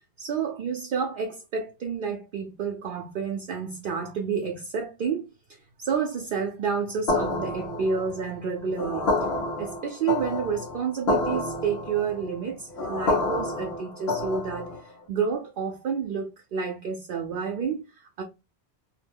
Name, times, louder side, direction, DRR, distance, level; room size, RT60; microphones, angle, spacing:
voice 1, 0.2-5.3 5.8-9.1 9.6-18.2, right 6 dB, 60° right, 0.7 m, -30 dB
sound 1, 7.1-14.9, left 2 dB, 85° left, 1.0 m, -29 dB
2.7 x 2.0 x 3.4 m
omnidirectional pair, 1.0 m